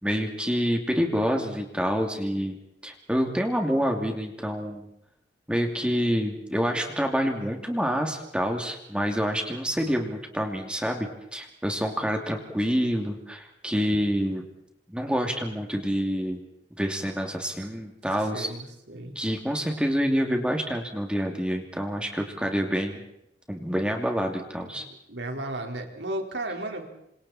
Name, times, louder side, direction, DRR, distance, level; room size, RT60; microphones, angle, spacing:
voice 1, 0.0-2.6 2.8-4.9 5.5-14.4 14.9-16.4 16.8-18.5 19.1-23.0 23.5-24.8, equal, 5° right, 3 dB, 2.8 m, -27 dB
voice 2, 18.3-19.1 25.1-26.8, right 1 dB, 80° right, 2 dB, 4.7 m, -34 dB
28.5 x 26.5 x 4.4 m, 0.79 s
head